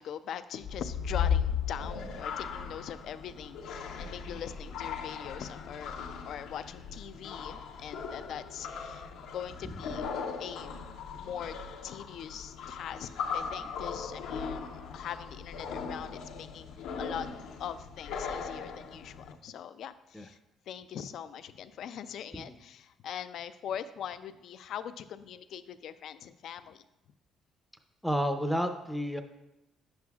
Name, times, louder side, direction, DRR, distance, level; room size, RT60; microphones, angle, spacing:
voice 1, 0.0-10.1 10.4-10.8 11.2-11.5 11.8-17.3 17.6-20.4 20.7-26.8, left 9 dB, 70° left, 12 dB, 0.4 m, -42 dB
sound 1, 0.6-19.3, left 6 dB, 85° left, 0.8 m, -37 dB
voice 2, 4.0-4.3 9.6-9.7 20.1-20.3 22.4-22.5 28.0-29.2, equal, ahead, 7 dB, 0.6 m, -32 dB
10.5 x 7.7 x 2.4 m, 0.92 s
cardioid pair, 90°, 0 cm